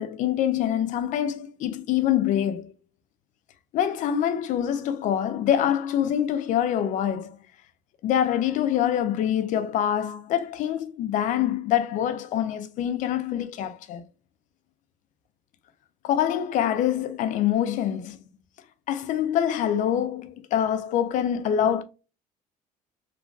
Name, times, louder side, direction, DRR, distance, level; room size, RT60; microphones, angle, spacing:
voice 1, 0.0-2.7 3.7-7.4 8.0-14.0 16.0-18.2 18.9-21.8, left 10 dB, 60° left, 0.4 m, -25 dB
3.0 x 2.3 x 2.4 m
cardioid pair, 130°, 15 cm